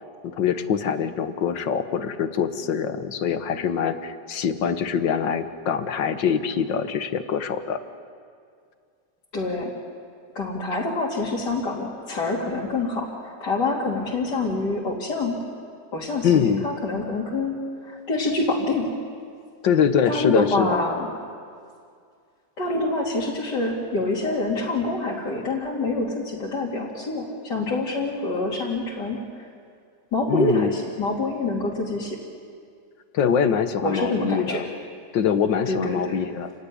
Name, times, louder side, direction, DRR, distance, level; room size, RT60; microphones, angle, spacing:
voice 1, 0.2-7.8 16.2-16.7 19.6-20.8 30.3-30.7 33.1-34.6 35.1-36.5, left 7 dB, 85° left, 9 dB, 1.9 m, -23 dB
voice 2, 9.3-9.7 10.4-15.4 15.9-18.9 20.1-21.1 22.6-29.2 30.1-32.2 33.8-34.6 35.7-36.2, left 2 dB, 65° left, -6 dB, 3.4 m, -26 dB
29.0 x 16.5 x 9.9 m, 2.2 s
omnidirectional pair, 1.9 m